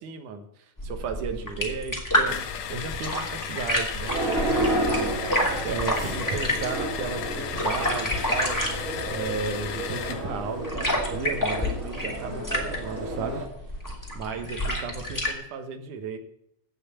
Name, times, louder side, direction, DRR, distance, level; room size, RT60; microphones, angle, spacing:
voice 1, 0.0-2.4 2.7-5.0 5.6-8.6 9.1-13.4 14.1-16.2, right 5 dB, 70° right, 6 dB, 2.8 m, -34 dB
sound 1, 0.8-15.3, left 1 dB, 5° left, 2.2 m, -30 dB
sound 2, 2.3-10.3, left 8 dB, 75° left, 2.5 m, -35 dB
sound 3, 4.0-13.5, right 1 dB, 25° right, 3.3 m, -31 dB
16.5 x 5.9 x 8.4 m, 0.75 s
omnidirectional pair, 3.8 m